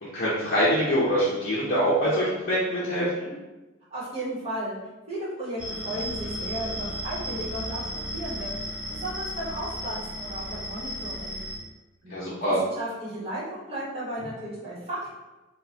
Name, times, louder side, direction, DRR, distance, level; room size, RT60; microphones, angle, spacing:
voice 1, 0.0-3.3 12.1-12.6, equal, 45° left, -9 dB, 0.7 m, -24 dB
voice 2, 3.9-4.8 5.1-7.8 8.1-8.7 9.0-11.4 12.0-15.1, right 1 dB, 30° right, -9 dB, 1.2 m, -35 dB
sound 1, 5.6-11.6, equal, 5° right, 0.4 m, -34 dB
3.7 x 2.3 x 2.8 m, 1.1 s
head